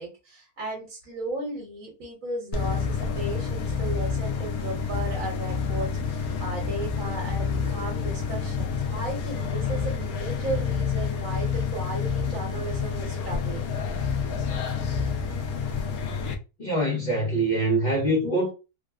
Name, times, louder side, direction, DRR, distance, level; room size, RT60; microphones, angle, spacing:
voice 1, 0.0-13.7, right 2 dB, 65° right, 1.3 m, -35 dB
sound 1, 2.5-16.3, left 5 dB, 75° left, 1.0 m, -28 dB
voice 2, 16.6-18.5, right 1 dB, 40° left, 0.7 m, -24 dB
3.4 x 2.0 x 2.3 m
omnidirectional pair, 1.6 m